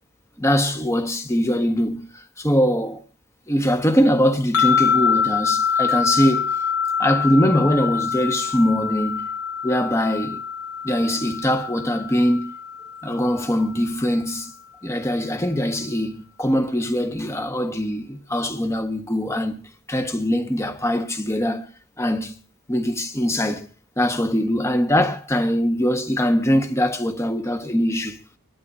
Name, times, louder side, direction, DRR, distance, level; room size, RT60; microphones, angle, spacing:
voice 1, 0.4-2.1 2.4-3.0 3.5-6.6 7.0-9.3 9.6-10.4 10.8-12.5 13.0-14.5 14.8-19.6 19.9-21.7 22.0-22.4 22.7-23.7 24.0-28.2, equal, 15° left, 1.4 m, -22 dB
sound 1, 4.5-13.8, left 7 dB, 85° left, 1.2 m, -25 dB
25.0 x 12.0 x 2.7 m
head